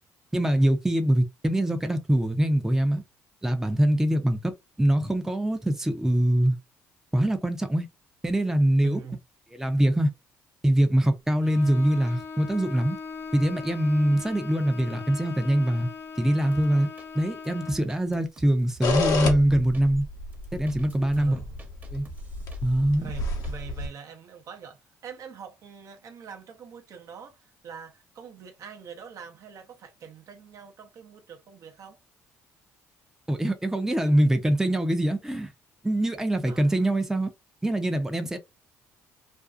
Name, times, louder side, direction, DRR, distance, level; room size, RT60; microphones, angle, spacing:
voice 1, 0.3-3.0 3.4-4.5 4.8-6.6 7.1-7.9 8.2-9.0 9.6-10.1 10.6-13.0 13.3-15.9 16.2-16.9 17.1-20.1 20.5-21.4 21.9-22.0 22.6-23.1 33.3-35.5 35.8-37.3 37.6-38.4, right 1 dB, 5° right, 0.5 m, -23 dB
voice 2, 8.8-9.2 21.1-21.7 23.0-32.0 34.7-34.8 36.4-36.9, right 6 dB, 55° right, 0.6 m, -43 dB
Bowed string instrument, 11.4-17.9, left 5 dB, 45° left, 0.6 m, -40 dB
sound 1, 16.5-17.1 17.4-18.9 19.5-19.8 20.3-22.9 23.2-23.5, right 4 dB, 25° right, 0.9 m, -47 dB
sound 2, 18.8-23.9, left 3 dB, 70° left, 0.8 m, -30 dB
2.5 x 2.3 x 2.3 m
hypercardioid pair, 60°, 7 cm